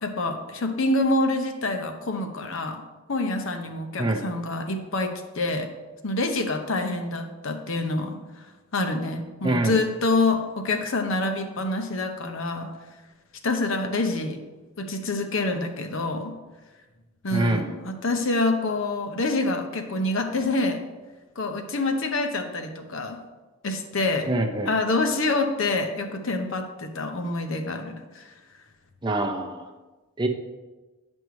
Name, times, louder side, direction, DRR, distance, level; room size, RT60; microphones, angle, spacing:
voice 1, 0.0-2.8 3.1-5.7 6.0-8.2 8.7-12.7 13.4-14.4 14.8-16.4 17.2-20.8 21.4-23.2 23.6-24.3 24.6-28.2, left 2 dB, 70° left, 6 dB, 0.7 m, -26 dB
voice 2, 9.4-9.8 17.3-17.7 24.3-24.7 29.0-29.7 30.2-30.3, right 2 dB, 20° right, 5 dB, 0.5 m, -25 dB
9.2 x 5.4 x 3.1 m, 1.2 s
head